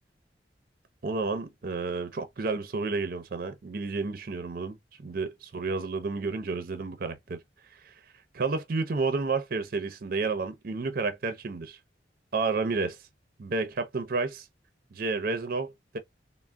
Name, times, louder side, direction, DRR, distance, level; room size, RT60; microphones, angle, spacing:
voice 1, 1.0-7.4 7.7-7.9 8.3-11.8 12.3-13.0 13.4-14.5 14.9-16.0, right 4 dB, 55° right, 0.5 m, -31 dB
3.5 x 2.0 x 2.2 m
head